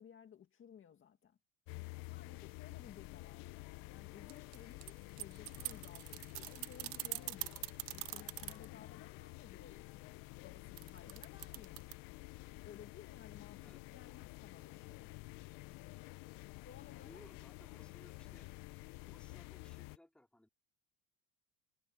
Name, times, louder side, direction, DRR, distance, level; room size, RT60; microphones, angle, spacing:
voice 1, 0.0-1.4 2.0-11.8 12.6-15.2 16.6-17.2, left 8 dB, 30° left, 2.0 m, -58 dB
sound 1, 1.7-20.0, left 24 dB, 55° left, 0.6 m, -51 dB
sound 2, 4.3-8.7 10.8-11.9, right 23 dB, 85° right, 1.1 m, -43 dB
voice 2, 17.0-18.5 19.1-20.5, left 1 dB, ahead, 2.8 m, -62 dB
cardioid pair, 145°, 40 cm